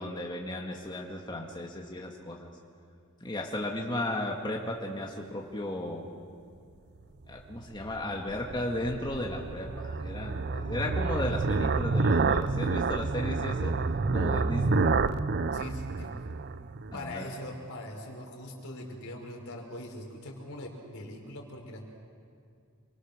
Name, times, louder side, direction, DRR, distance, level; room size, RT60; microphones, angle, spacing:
voice 1, 0.0-2.5 3.2-6.1 7.3-13.7 14.1-14.8 16.9-17.3, left 1 dB, 20° left, -1 dB, 1.9 m, -35 dB
sound 1, 7.5-17.1, right 4 dB, 50° right, 0.6 m, -29 dB
voice 2, 15.5-16.1 16.9-21.8, left 1 dB, 70° left, 1 dB, 4.8 m, -42 dB
28.5 x 23.0 x 6.7 m, 2.3 s
head